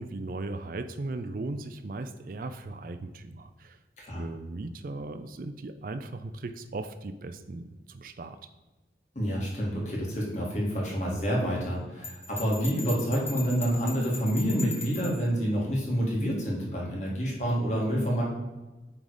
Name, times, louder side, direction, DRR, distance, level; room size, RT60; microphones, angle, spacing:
voice 1, 0.0-3.8 4.1-8.4, right 2 dB, 50° right, 9 dB, 0.4 m, -37 dB
voice 2, 9.2-18.2, equal, 40° left, -3 dB, 2.2 m, -28 dB
Bell, 12.0-15.2, left 2 dB, 15° left, 0.8 m, -39 dB
8.8 x 4.0 x 4.9 m, 1.1 s
head